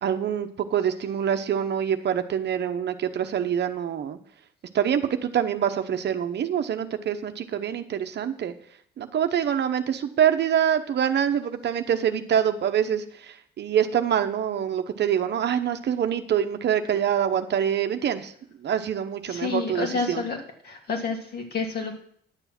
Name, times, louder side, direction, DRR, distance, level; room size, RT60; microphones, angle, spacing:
voice 1, 0.0-4.2 4.7-8.5 9.0-13.0 13.6-18.3 18.6-20.2, right 9 dB, 60° right, 8 dB, 0.9 m, -25 dB
voice 2, 19.3-20.4 20.6-22.0, left 4 dB, 55° left, 1 dB, 2.6 m, -29 dB
10.5 x 6.9 x 5.9 m, 0.62 s
cardioid pair, 90°, 20 cm